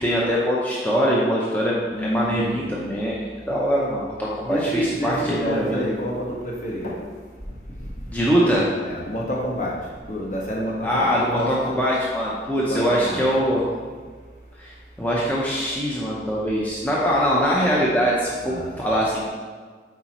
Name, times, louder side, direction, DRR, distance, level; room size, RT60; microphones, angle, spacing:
voice 1, 0.0-5.8 8.1-8.7 10.8-13.7 14.6-14.7 15.0-19.3, equal, 10° left, -6 dB, 0.7 m, -22 dB
voice 2, 1.9-2.7 4.4-7.0 8.8-9.8 10.1-11.8 12.6-13.2 18.4-18.7, equal, 45° left, -3 dB, 1.3 m, -28 dB
8.0 x 5.0 x 3.0 m, 1.5 s
head